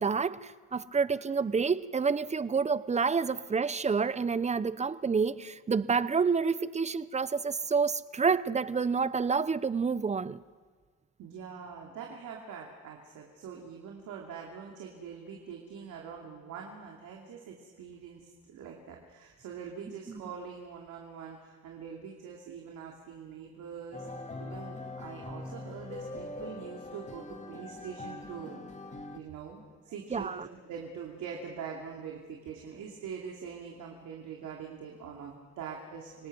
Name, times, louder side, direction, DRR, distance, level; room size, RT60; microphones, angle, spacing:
voice 1, 0.0-10.4 20.1-20.2 30.1-30.5, right 5 dB, 25° right, 16 dB, 0.7 m, -28 dB
voice 2, 11.2-24.1 24.4-28.6 29.1-36.3, right 6 dB, 80° right, 0 dB, 2.8 m, -44 dB
sound 1, 23.9-29.2, left 2 dB, 25° left, 2.1 m, -42 dB
27.0 x 18.5 x 6.1 m, 1.5 s
cardioid pair, 90°, 30 cm